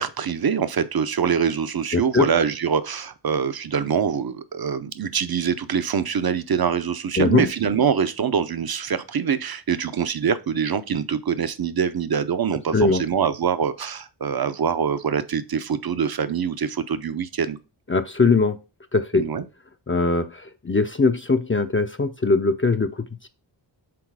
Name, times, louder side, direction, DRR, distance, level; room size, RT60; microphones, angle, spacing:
voice 1, 0.0-17.6 19.1-19.4, right 7 dB, 50° right, 0.7 m, -24 dB
voice 2, 1.9-2.3 7.2-7.5 12.7-13.0 17.9-18.6 18.9-19.3 19.9-23.3, left 3 dB, 25° left, 0.6 m, -21 dB
6.1 x 4.0 x 4.7 m
cardioid pair, 50°, 47 cm